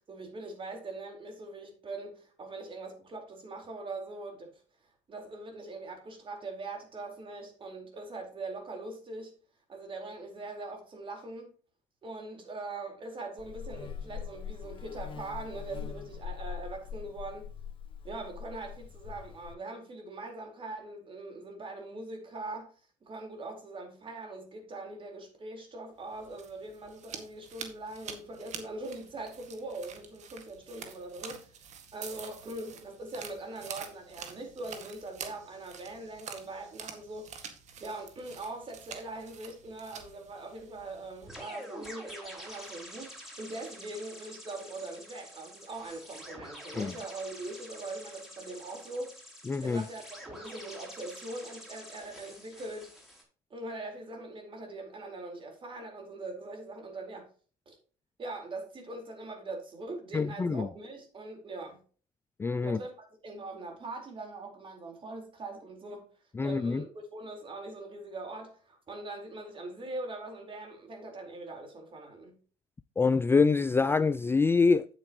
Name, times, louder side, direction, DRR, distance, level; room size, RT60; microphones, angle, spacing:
voice 1, 0.1-4.5 5.1-9.3 9.7-11.5 12.0-17.5 18.0-22.7 23.0-31.5 31.9-37.3 37.8-49.2 49.6-52.9 53.5-57.3 57.7-57.8 58.2-61.8 62.6-66.1 66.4-72.4, right 2 dB, 35° right, 4.3 m, -42 dB
Buzz, 13.4-19.5, left 7 dB, 35° left, 1.7 m, -42 dB
sound 1, 26.1-41.3, right 7 dB, 55° right, 1.9 m, -47 dB
sound 2, 41.3-53.2, equal, ahead, 5.1 m, -47 dB
voice 2, 49.5-49.8 60.1-60.7 62.4-62.8 66.4-66.8 73.0-74.9, left 4 dB, 15° left, 0.3 m, -25 dB
9.0 x 8.6 x 3.0 m
supercardioid pair, 85°, 14 cm